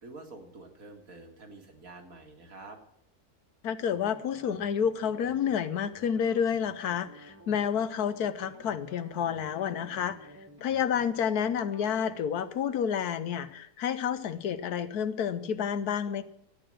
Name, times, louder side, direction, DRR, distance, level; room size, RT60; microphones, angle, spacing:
voice 1, 0.0-2.8, right 3 dB, 65° right, 3 dB, 2.3 m, -48 dB
voice 2, 3.6-10.3 10.6-16.2, left 8 dB, 85° left, 12 dB, 1.4 m, -29 dB
sound 1, 3.8-12.2, equal, 10° right, 1.4 m, -52 dB
13.0 x 8.8 x 7.6 m, 0.71 s
omnidirectional pair, 1.6 m